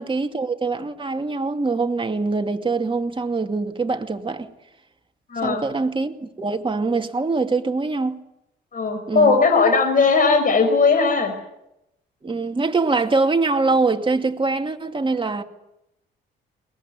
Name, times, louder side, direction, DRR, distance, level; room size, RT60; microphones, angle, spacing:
voice 1, 0.0-4.5 5.4-8.2 9.1-9.4 12.2-15.4, right 3 dB, 25° right, 2.5 m, -23 dB
voice 2, 5.3-5.6 8.7-11.3, left 4 dB, 45° left, 5.5 m, -18 dB
22.0 x 21.0 x 9.6 m
cardioid pair, 90°, 20 cm